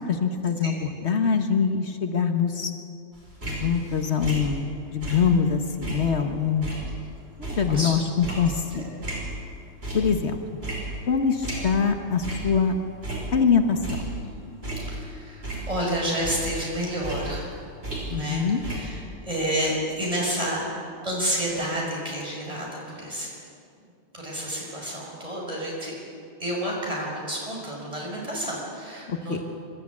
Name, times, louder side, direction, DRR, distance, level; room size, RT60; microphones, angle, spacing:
voice 1, 0.0-2.7 3.4-6.7 7.4-8.8 9.9-10.4 11.1-12.7 13.3-14.0 18.1-18.6 29.1-29.4, left 6 dB, 75° left, 6 dB, 1.6 m, -24 dB
sound 1, 3.2-5.5 5.8-9.5 9.8-10.3 10.6-12.0 12.2-12.6 12.9-14.3 14.6-16.0 16.2-18.4 18.6-18.8, right 2 dB, 60° right, 5.7 m, -34 dB
voice 2, 7.6-7.9 8.7-9.1 14.7-17.5 18.1-20.6 21.0-23.3 24.1-25.9 26.4-29.4, equal, 30° right, -4 dB, 6.0 m, -30 dB
25.0 x 13.0 x 8.6 m, 2.4 s
omnidirectional pair, 1.2 m